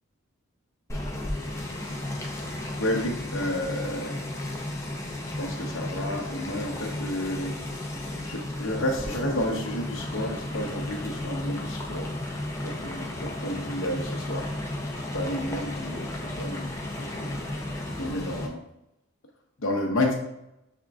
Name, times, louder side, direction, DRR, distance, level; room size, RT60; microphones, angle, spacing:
sound 1, 0.9-18.5, left 1 dB, 15° left, 0.5 m, -34 dB
voice 1, 2.8-4.2 5.4-7.6 8.2-12.1 12.8-14.5 15.1-16.7 17.0-17.3 18.0-18.6 19.6-20.3, left 1 dB, 70° left, 0 dB, 0.7 m, -31 dB
5.8 x 3.6 x 2.3 m, 0.84 s
head